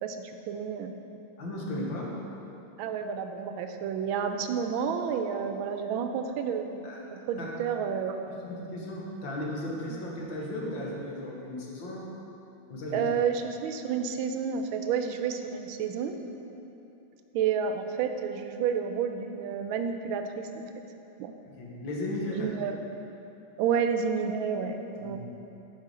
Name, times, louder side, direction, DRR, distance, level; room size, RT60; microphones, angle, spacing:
voice 1, 0.0-1.0 2.8-6.9 7.1-8.2 12.9-16.1 17.3-20.6 21.2-21.3 22.3-22.8 23.6-25.2, right 7 dB, 85° right, 6 dB, 1.4 m, -30 dB
voice 2, 1.4-2.1 6.8-7.0 7.4-7.5 8.4-12.1 12.7-13.1 21.6-22.5 25.0-25.2, left 1 dB, 75° left, -3 dB, 1.8 m, -35 dB
7.4 x 5.6 x 4.8 m, 2.9 s
omnidirectional pair, 2.1 m